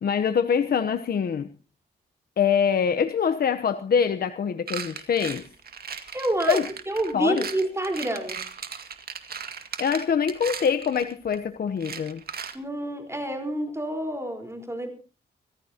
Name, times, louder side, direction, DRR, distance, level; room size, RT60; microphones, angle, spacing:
voice 1, 0.0-1.5 2.4-5.5 6.5-6.7 7.1-7.5 9.8-12.2, left 7 dB, 55° left, 9 dB, 0.9 m, -24 dB
sound 1, 4.7-11.4 11.8-12.5, right 6 dB, 55° right, 2.1 m, -37 dB
voice 2, 6.1-6.6 6.9-8.4 12.5-14.9, right 1 dB, 15° right, 5 dB, 4.4 m, -28 dB
25.5 x 14.5 x 2.9 m, 0.35 s
cardioid pair, 105°, 18 cm